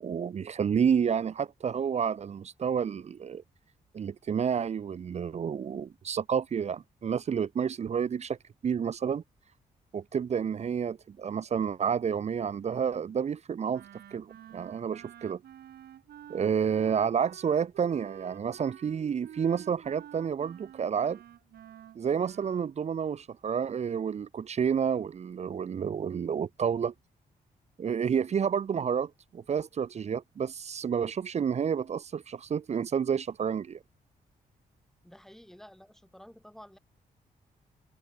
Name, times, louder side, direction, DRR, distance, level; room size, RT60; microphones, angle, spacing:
voice 1, 0.0-3.4 3.9-8.4 8.6-9.2 9.9-13.8 14.1-15.4 16.3-21.2 22.0-26.9 27.8-33.8, right 7 dB, 45° right, 0.8 m, -30 dB
Wind instrument woodwind instrument, 13.7-22.7, right 11 dB, 85° right, 3.3 m, -50 dB
voice 2, 35.0-36.8, equal, 5° left, 6.8 m, -51 dB
cardioid pair, 125°, 16 cm